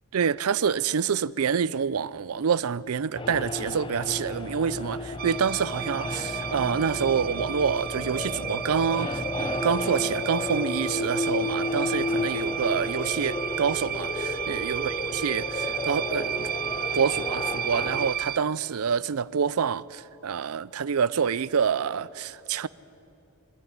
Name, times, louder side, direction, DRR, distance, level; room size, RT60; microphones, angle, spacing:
voice 1, 0.1-16.5 16.9-22.7, right 7 dB, 90° right, 0.5 m, -27 dB
sound 1, 3.1-18.1, left 2 dB, 25° left, 0.7 m, -32 dB
sound 2, 4.0-10.1, right 1 dB, 90° left, 6.3 m, -45 dB
sound 3, 5.2-18.4, right 10 dB, 45° right, 0.6 m, -33 dB
23.5 x 15.5 x 9.8 m
head